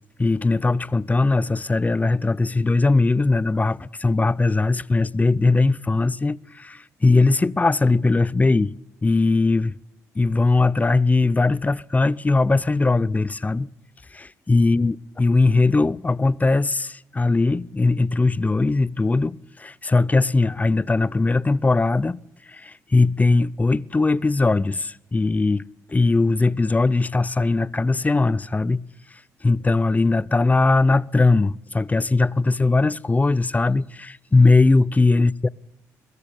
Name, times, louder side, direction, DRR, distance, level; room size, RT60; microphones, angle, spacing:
voice 1, 0.2-8.7 9.0-9.7 10.2-13.7 14.1-22.2 22.5-28.8 29.4-35.5, left 3 dB, 20° left, 0.7 m, -20 dB
22.5 x 13.5 x 8.4 m
supercardioid pair, 55°, 7 cm